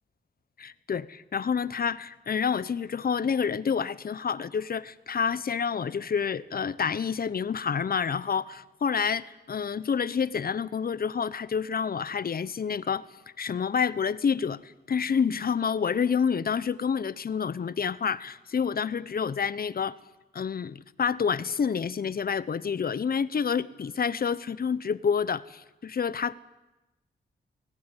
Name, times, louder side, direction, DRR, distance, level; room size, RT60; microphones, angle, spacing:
voice 1, 0.6-13.0 13.4-19.9 20.3-26.3, left 6 dB, 55° left, 17 dB, 0.9 m, -28 dB
19.5 x 16.0 x 9.9 m, 1.0 s
cardioid pair, 75°, 19 cm